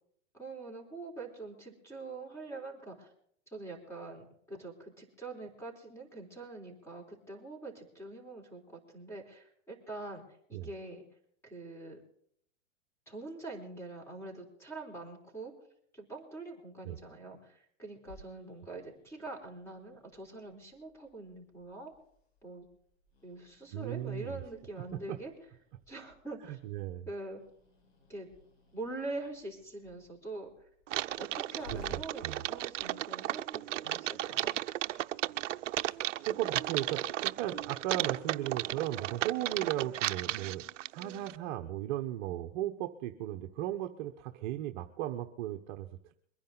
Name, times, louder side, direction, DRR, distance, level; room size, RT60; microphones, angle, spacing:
voice 1, 0.3-3.1 3.5-10.2 10.5-11.0 11.4-12.0 13.1-15.5 15.9-21.9 22.4-22.7 23.2-25.3 25.9-26.6 27.1-27.4 28.1-28.3 28.7-30.5 31.2-34.5, right 2 dB, 5° left, 3 dB, 4.0 m, -44 dB
Growling, 18.0-32.8, equal, 80° left, 7.1 m, -57 dB
voice 2, 23.7-24.4 25.1-25.2 26.5-27.1 31.7-32.4 36.3-40.6 40.9-46.1, right 13 dB, 40° right, 5 dB, 1.1 m, -36 dB
Typing, 30.9-41.4, right 13 dB, 75° right, 0.7 m, -35 dB
23.0 x 10.5 x 4.0 m, 0.65 s
hypercardioid pair, 150°, 38 cm